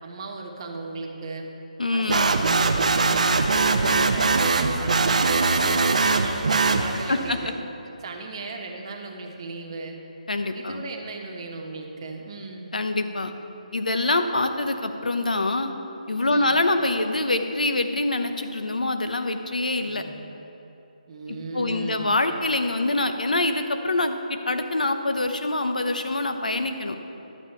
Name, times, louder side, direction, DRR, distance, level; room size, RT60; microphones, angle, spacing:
voice 1, 0.0-1.5 1.9-7.5 8.0-10.0 10.5-12.7 16.3-16.6 19.8-20.1 21.1-22.1, right 3 dB, 40° right, 1 dB, 1.1 m, -36 dB
voice 2, 1.8-2.3 6.7-6.8 7.1-7.4 10.3-10.8 12.7-13.3 13.7-15.7 16.1-20.0 21.5-27.0, left 2 dB, 85° left, 7 dB, 0.8 m, -25 dB
sound 1, 2.1-7.3, right 4 dB, 65° right, 0.6 m, -21 dB
11.5 x 7.1 x 4.4 m, 2.9 s
figure-of-eight pair, 155°, 4 cm